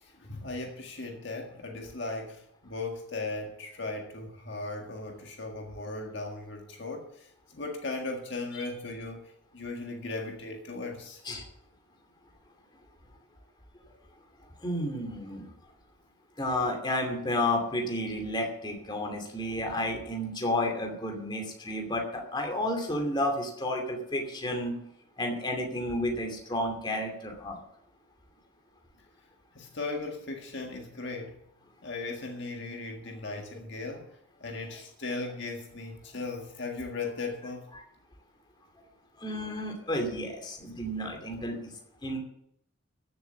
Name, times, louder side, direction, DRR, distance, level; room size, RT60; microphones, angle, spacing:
voice 1, 0.0-11.2 29.6-31.4 31.8-37.7, left 3 dB, 55° left, 1.7 m, -37 dB
voice 2, 14.6-15.4 16.4-24.8 25.2-27.6 39.2-41.6 42.0-42.2, left 1 dB, 20° left, 2.6 m, -31 dB
14.5 x 7.3 x 7.2 m
head